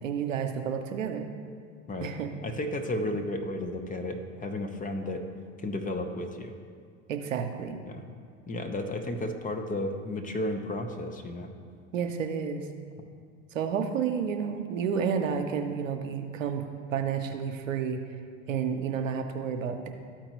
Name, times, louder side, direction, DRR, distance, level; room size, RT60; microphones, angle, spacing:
voice 1, 0.0-1.3 2.0-2.3 7.1-7.8 11.9-12.6 13.5-16.6 16.9-18.0 18.5-19.9, right 7 dB, 90° right, 5 dB, 0.7 m, -30 dB
voice 2, 2.4-5.2 5.6-6.5 7.8-8.1 8.5-11.5, left 1 dB, 20° left, 5 dB, 0.8 m, -33 dB
13.0 x 4.5 x 3.0 m, 2.1 s
hypercardioid pair, 75°, 38 cm